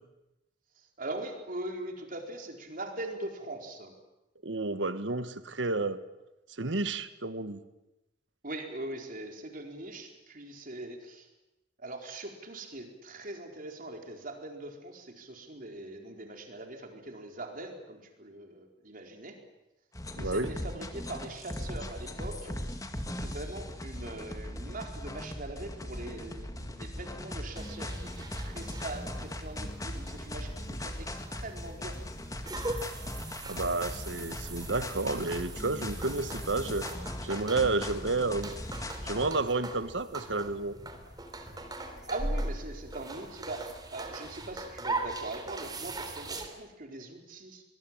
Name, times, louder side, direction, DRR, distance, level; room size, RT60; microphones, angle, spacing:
voice 1, 0.8-3.9 8.4-11.3 11.8-19.4 20.2-22.8 23.2-32.0 42.1-47.6, right 2 dB, 50° right, 3 dB, 4.3 m, -41 dB
voice 2, 4.4-6.0 6.6-7.6 20.2-20.5 33.5-36.9 37.2-38.5 39.0-40.8, right 3 dB, 80° right, 12 dB, 1.5 m, -31 dB
sound 1, 19.9-39.3, left 1 dB, 20° left, 2.1 m, -39 dB
sound 2, 27.5-46.5, right 2 dB, 25° right, 3.3 m, -40 dB
24.5 x 21.0 x 9.0 m, 0.97 s
head